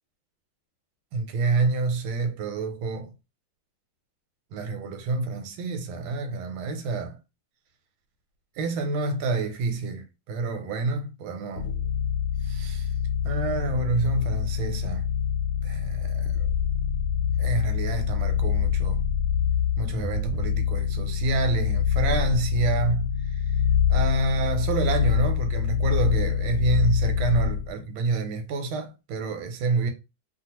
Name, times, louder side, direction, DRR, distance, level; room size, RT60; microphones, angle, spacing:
voice 1, 1.1-3.1 4.5-7.2 8.6-11.7 12.4-12.9 13.2-15.0 15.6-16.5 17.4-19.0 19.8-23.4 23.9-29.9, right 3 dB, 85° right, 1.5 m, -28 dB
sound 1, 11.6-27.7, left 8 dB, 85° left, 1.5 m, -25 dB
3.2 x 2.4 x 2.8 m
omnidirectional pair, 2.2 m